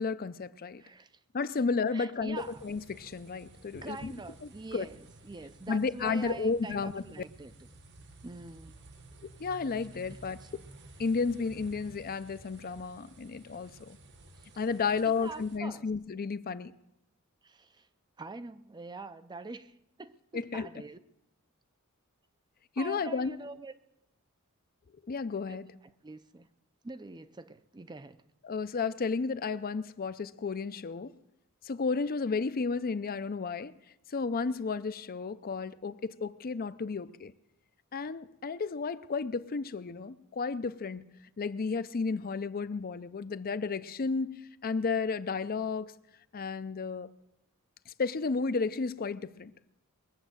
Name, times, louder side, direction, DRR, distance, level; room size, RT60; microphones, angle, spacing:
voice 1, 0.0-0.8 1.3-4.1 4.7-4.9 5.7-7.0 9.2-10.6 11.0-14.0 14.6-16.7 20.3-20.7 22.8-23.4 25.0-25.7 28.4-31.2 31.6-33.7 34.1-37.3 37.9-41.1 41.4-45.9 46.3-47.1 47.9-49.5, left 4 dB, 40° left, 0.5 m, -32 dB
voice 2, 0.8-1.2 1.9-2.6 3.8-7.5 8.2-8.8 10.4-10.5 15.0-15.9 17.4-17.9 18.2-21.0 22.8-23.7 25.5-25.6 26.0-26.5 26.8-28.2, right 3 dB, 20° right, 0.5 m, -45 dB
sound 1, 2.4-15.6, right 1 dB, 55° right, 1.2 m, -53 dB
21.5 x 7.2 x 7.9 m
head